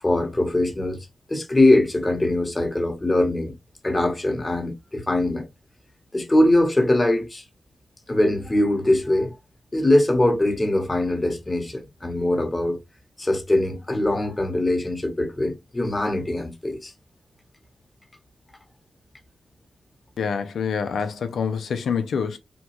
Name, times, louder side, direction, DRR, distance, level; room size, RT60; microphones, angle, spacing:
voice 1, 0.0-3.5 3.8-5.5 6.1-7.4 8.1-9.3 9.7-12.8 13.2-16.9, left 1 dB, 30° left, 1.1 m, -22 dB
voice 2, 20.2-22.4, left 6 dB, 85° left, 0.5 m, -26 dB
3.0 x 2.2 x 3.0 m
supercardioid pair, 40°, 0 cm